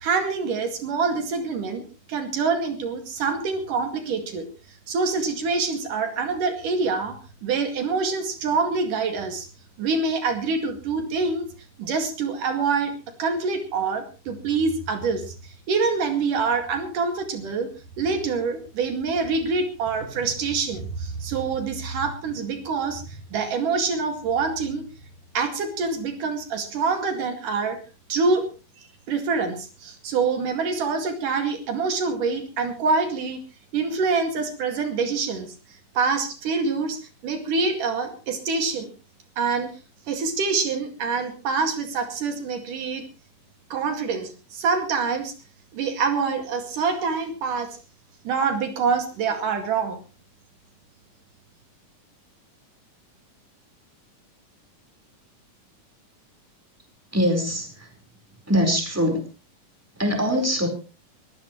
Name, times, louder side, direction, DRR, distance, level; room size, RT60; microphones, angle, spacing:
voice 1, 0.0-1.8 2.1-4.5 4.9-7.1 7.4-9.5 9.8-11.5 11.8-12.9 13.2-17.7 18.0-24.8 25.3-27.8 28.1-28.4 29.1-33.4 33.7-35.5 36.0-37.0 37.2-38.9 39.4-39.7 40.1-43.0 43.7-45.3 45.7-47.8 48.3-50.0, right 4 dB, 75° right, 5 dB, 3.8 m, -25 dB
voice 2, 57.1-57.9 58.4-59.2 60.0-60.7, equal, 5° right, 4 dB, 4.2 m, -23 dB
23.0 x 15.0 x 3.2 m, 0.34 s
omnidirectional pair, 3.7 m